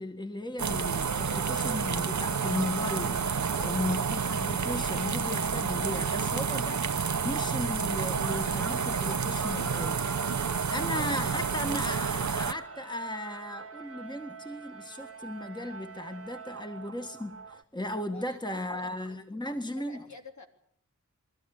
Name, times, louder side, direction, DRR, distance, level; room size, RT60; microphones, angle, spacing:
voice 1, 0.0-3.2 3.6-10.0 10.4-20.1, left 1 dB, 15° left, 6 dB, 1.7 m, -36 dB
sound 1, 0.6-12.5, right 6 dB, 70° right, 0.9 m, -30 dB
sound 2, 1.1-17.6, right 4 dB, 50° right, 1.3 m, -45 dB
voice 2, 3.4-3.9 10.7-11.2 18.1-20.5, left 2 dB, 65° left, 3 dB, 3.7 m, -49 dB
23.0 x 14.5 x 9.9 m, 0.68 s
wide cardioid pair, 80°, 30 cm